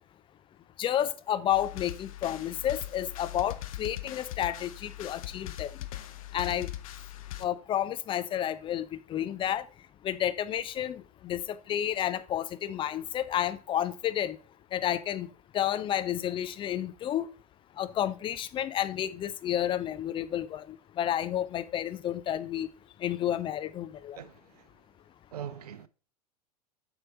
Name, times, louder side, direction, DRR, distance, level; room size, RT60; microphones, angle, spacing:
voice 1, 0.8-5.7 6.3-6.7 7.4-9.7 10.0-11.4 11.7-14.4 14.7-15.3 15.5-17.3 17.8-22.7 23.0-24.2, left 11 dB, 25° left, 0.5 m, -31 dB
sound 1, 1.5-7.5, left 13 dB, 55° left, 0.8 m, -40 dB
voice 2, 24.2-24.7 25.3-25.9, right 9 dB, 65° right, 0.6 m, -42 dB
7.5 x 4.5 x 3.3 m
figure-of-eight pair, 90°, 21 cm